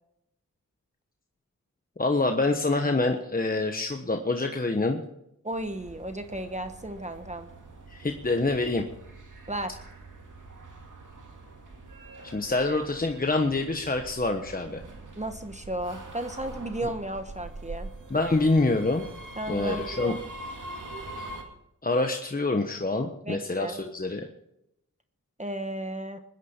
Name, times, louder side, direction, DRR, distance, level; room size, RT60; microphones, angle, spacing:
voice 1, 2.0-5.0 7.9-8.8 12.3-14.8 18.1-19.1 19.5-20.1 21.2-21.3 21.8-24.3, left 2 dB, 25° left, 4 dB, 1.2 m, -26 dB
voice 2, 5.4-7.5 9.5-9.8 15.2-17.9 19.4-20.2 23.2-23.8 25.4-26.2, right 1 dB, 20° right, 7 dB, 1.1 m, -34 dB
sound 1, 5.5-21.4, right 2 dB, 65° right, 2.4 m, -44 dB
22.0 x 10.0 x 4.5 m, 0.80 s
wide cardioid pair, 70°, 33 cm